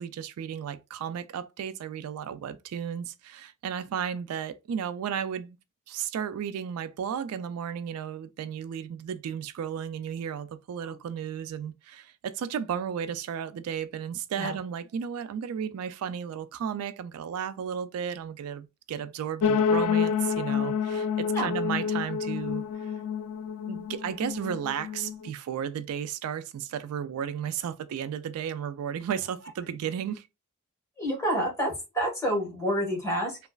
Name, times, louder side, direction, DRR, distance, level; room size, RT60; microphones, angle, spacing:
voice 1, 0.0-5.6 5.9-22.9 23.7-30.3, right 8 dB, 70° right, 0.3 m, -34 dB
sound 1, 19.4-25.3, left 7 dB, 85° left, 0.3 m, -28 dB
voice 2, 31.0-33.4, equal, 15° left, 1.5 m, -28 dB
3.0 x 2.3 x 2.3 m
head